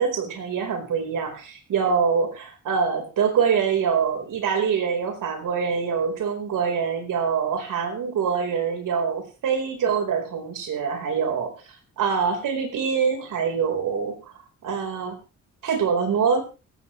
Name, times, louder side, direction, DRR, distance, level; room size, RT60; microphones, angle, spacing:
voice 1, 0.0-11.5 12.0-14.2 14.6-15.2 15.6-16.4, right 6 dB, 85° right, 6 dB, 4.4 m, -24 dB
16.5 x 15.5 x 3.2 m, 0.31 s
wide cardioid pair, 160°, 31 cm